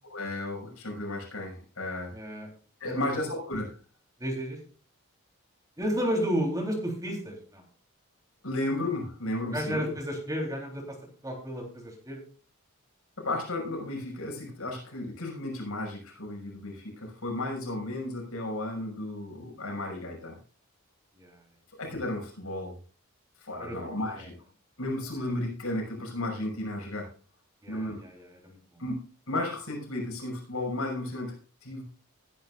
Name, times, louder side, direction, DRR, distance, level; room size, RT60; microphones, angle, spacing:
voice 1, 0.0-2.2 2.8-3.7 8.4-9.9 13.2-20.4 21.8-22.7 23.4-24.3 24.8-27.1 27.7-28.0 28.8-29.0 29.3-31.3 31.6-31.8, left 1 dB, 80° left, 1 dB, 6.1 m, -34 dB
voice 2, 2.1-2.5 2.9-3.0 4.2-4.6 5.8-7.6 9.5-11.0 11.2-12.2 21.2-21.4 23.6-24.3 27.6-28.8, equal, 15° right, 1 dB, 3.5 m, -32 dB
20.0 x 10.5 x 2.5 m, 0.38 s
head